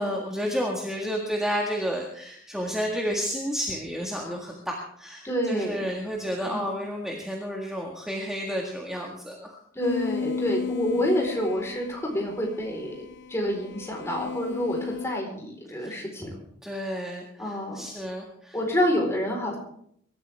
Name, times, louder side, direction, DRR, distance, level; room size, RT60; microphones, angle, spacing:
voice 1, 0.0-9.6 15.8-16.0 16.6-18.6, equal, 5° right, -1 dB, 1.8 m, -31 dB
voice 2, 5.2-5.8 6.4-6.7 9.7-16.4 17.4-17.9 18.5-19.6, equal, 15° left, 0 dB, 4.4 m, -28 dB
sound 1, 9.8-15.2, left 6 dB, 60° left, 0.7 m, -34 dB
24.0 x 13.5 x 3.6 m, 0.68 s
head